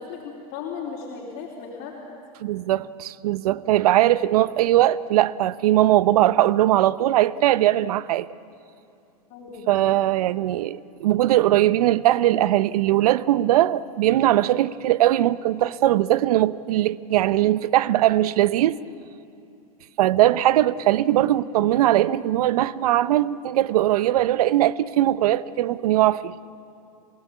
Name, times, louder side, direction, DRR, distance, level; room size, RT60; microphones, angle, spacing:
voice 1, 0.0-2.0 9.3-10.0, left 6 dB, 50° left, 4.0 m, -36 dB
voice 2, 2.4-8.3 9.7-18.8 20.0-26.3, right 14 dB, 75° right, 0.8 m, -20 dB
27.5 x 18.0 x 8.4 m
hypercardioid pair, 110°, 20 cm